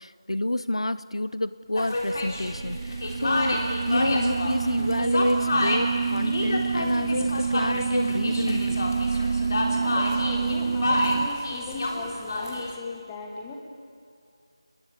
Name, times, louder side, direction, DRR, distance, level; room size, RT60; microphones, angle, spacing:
voice 1, 0.0-8.9, left 1 dB, 85° left, 15 dB, 1.1 m, -29 dB
sound 1, 1.8-12.8, left 2 dB, 35° left, 3.4 m, -29 dB
sound 2, 2.1-11.3, right 5 dB, 25° right, 0.6 m, -28 dB
voice 2, 9.1-13.6, left 2 dB, 10° left, 0 dB, 2.1 m, -38 dB
30.0 x 22.5 x 8.7 m, 2.3 s
figure-of-eight pair, 175°, 3 cm